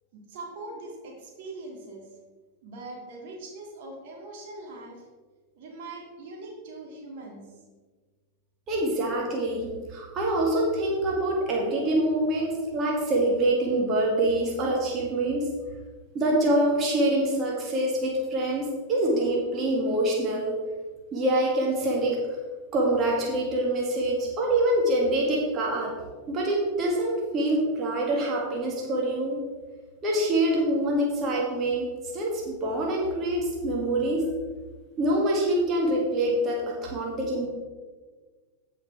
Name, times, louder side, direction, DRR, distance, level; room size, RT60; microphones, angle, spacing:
voice 1, 0.1-2.1 2.6-5.1 5.6-7.5, right 2 dB, 50° right, 0 dB, 2.3 m, -41 dB
voice 2, 8.7-15.5 16.1-20.5 21.1-22.2 22.7-25.9 26.3-29.4 30.0-31.9 32.1-34.3 35.0-37.5, right 1 dB, 30° right, -2 dB, 2.2 m, -25 dB
15.0 x 5.0 x 4.7 m, 1.4 s
figure-of-eight pair, 90°, 0 cm